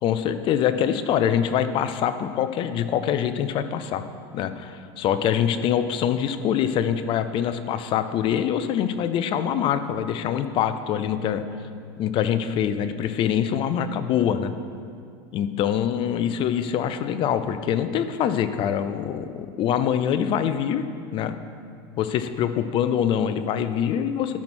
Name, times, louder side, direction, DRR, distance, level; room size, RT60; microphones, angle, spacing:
voice 1, 0.0-4.0 4.3-11.4 12.0-14.5 15.3-20.9 21.1-21.4 22.0-24.4, left 9 dB, 40° left, 11 dB, 0.5 m, -24 dB
12.0 x 6.1 x 4.3 m, 2.3 s
supercardioid pair, 125°, 13 cm